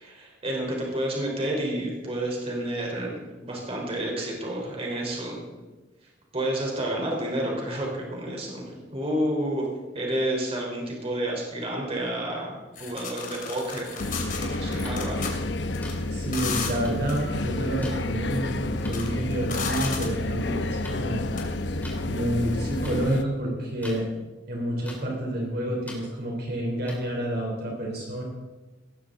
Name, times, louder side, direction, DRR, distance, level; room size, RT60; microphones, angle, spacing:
voice 1, 0.0-5.4 6.3-8.6 8.9-9.6 9.9-15.4, right 1 dB, 30° right, -1 dB, 4.0 m, -30 dB
sound 1, 12.8-15.3 15.7-15.9 16.3-16.7 17.1-17.2 18.1-18.4 18.8-20.2 21.4-21.5, left 6 dB, 45° left, 3.0 m, -34 dB
sound 2, 14.0-23.2, left 2 dB, 70° left, 0.9 m, -30 dB
sound 3, 14.8-14.9 15.8-15.9 16.8-16.9 17.8-17.9 18.8-18.9 19.8-20.0 20.8-21.0 21.8-22.0 22.8-23.0 23.8-24.0 24.8-25.0 25.9-26.0 26.9-27.0, left 1 dB, 10° left, 3.5 m, -41 dB
voice 2, 16.1-21.2 22.0-24.1 24.5-28.2, right 1 dB, 55° right, -1 dB, 3.6 m, -29 dB
18.0 x 14.0 x 3.9 m, 1.2 s
head